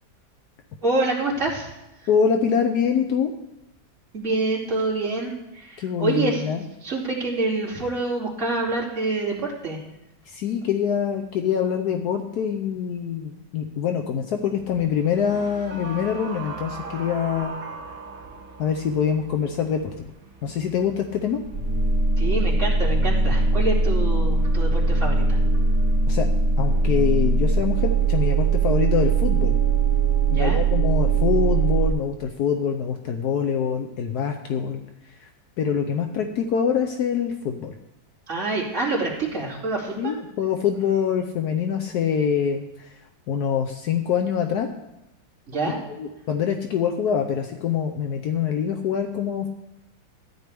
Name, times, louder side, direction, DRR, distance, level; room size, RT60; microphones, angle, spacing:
voice 1, 0.8-1.7 2.0-2.1 4.1-6.4 6.8-9.8 22.2-25.4 30.3-30.6 38.3-40.1 45.5-45.8, right 3 dB, 45° right, -5 dB, 2.9 m, -26 dB
voice 2, 2.1-3.3 5.8-6.6 10.3-17.5 18.6-19.9 20.4-21.4 26.1-26.3 26.6-29.6 30.3-34.8 35.2-35.3 35.6-37.7 40.0-42.9 43.3-44.7 46.0-49.5, left 7 dB, 70° left, 5 dB, 1.2 m, -24 dB
sound 1, 14.6-14.7 15.1-18.9 21.4-31.9, right 4 dB, 90° right, 2.6 m, -22 dB
13.5 x 9.7 x 3.4 m, 0.95 s
omnidirectional pair, 1.8 m